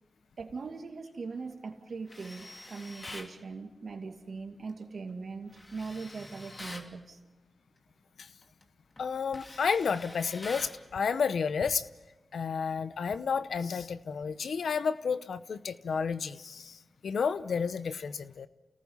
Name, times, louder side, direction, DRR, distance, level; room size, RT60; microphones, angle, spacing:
voice 1, 0.4-7.2, right 4 dB, 70° right, 5 dB, 2.4 m, -40 dB
Tools, 2.1-3.3 5.5-6.9 8.4-8.6 9.0-10.8, left 2 dB, 40° left, 2.9 m, -46 dB
voice 2, 9.0-11.9 12.3-16.8 17.0-18.5, left 6 dB, 85° left, 13 dB, 0.8 m, -31 dB
29.5 x 18.5 x 5.6 m, 1.1 s
cardioid pair, 40°, 0 cm